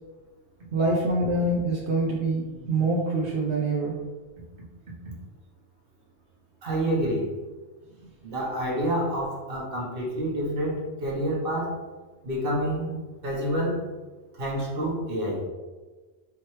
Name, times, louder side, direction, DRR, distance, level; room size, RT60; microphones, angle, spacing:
voice 1, 0.7-3.9, right 2 dB, 75° right, -3 dB, 0.9 m, -25 dB
voice 2, 6.6-7.3 8.2-11.8 12.2-13.0 13.2-13.9 14.4-15.5, right 1 dB, 55° right, -3 dB, 1.2 m, -28 dB
4.7 x 3.0 x 3.1 m, 1.3 s
omnidirectional pair, 1.2 m